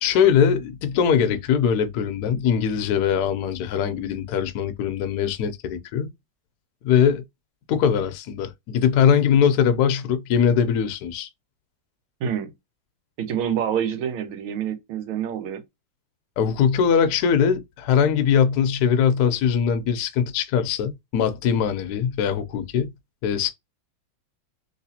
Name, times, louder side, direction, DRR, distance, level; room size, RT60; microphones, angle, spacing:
voice 1, 0.0-6.1 6.8-7.2 7.7-11.3 16.4-22.9 23.2-23.5, left 7 dB, 70° left, 0.9 m, -21 dB
voice 2, 12.2-12.5 13.2-15.6, right 8 dB, 90° right, 1.7 m, -27 dB
3.2 x 3.1 x 2.7 m
omnidirectional pair, 2.2 m